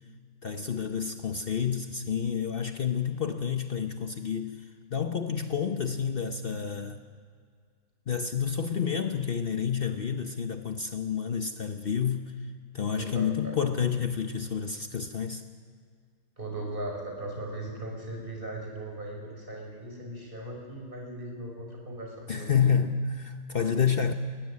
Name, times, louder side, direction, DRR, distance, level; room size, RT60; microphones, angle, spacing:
voice 1, 0.4-4.5 4.9-7.0 8.1-12.3 12.7-15.4 22.3-24.1, left 7 dB, 85° left, 7 dB, 0.5 m, -29 dB
voice 2, 9.8-10.2 12.9-13.5 16.4-22.5, right 1 dB, 25° right, 0 dB, 5.6 m, -38 dB
21.0 x 16.0 x 9.8 m, 2.1 s
omnidirectional pair, 2.2 m